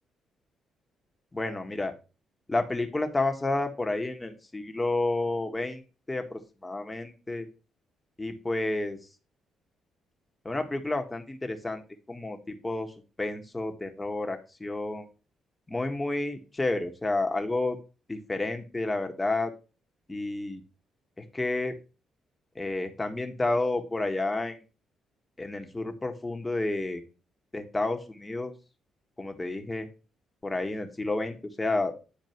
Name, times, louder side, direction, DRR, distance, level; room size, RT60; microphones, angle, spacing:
voice 1, 1.3-1.9 2.5-5.8 6.1-7.5 8.2-9.0 10.4-11.8 12.1-12.9 13.2-15.1 15.7-17.8 18.1-19.5 20.1-20.6 21.3-21.7 22.5-24.6 25.4-27.0 27.5-28.5 29.2-29.9 30.4-31.9, left 2 dB, 15° left, 5 dB, 1.6 m, -30 dB
9.6 x 4.5 x 4.5 m, 0.32 s
cardioid pair, 90°, 0 cm